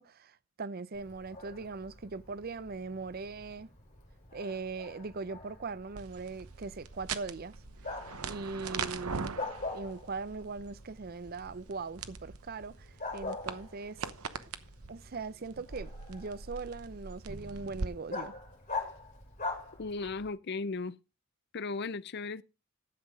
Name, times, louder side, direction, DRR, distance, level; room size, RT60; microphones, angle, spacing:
voice 1, 0.0-3.7 4.3-7.6 8.2-9.4 9.7-14.1 14.9-18.4, right 4 dB, 45° right, 0.5 m, -40 dB
Bark, 0.9-20.3, left 3 dB, 35° left, 5.0 m, -44 dB
sound 1, 6.0-17.9, right 5 dB, 90° right, 0.9 m, -42 dB
voice 2, 19.8-21.0 21.5-22.4, left 4 dB, 50° left, 0.6 m, -36 dB
11.5 x 7.6 x 5.0 m
head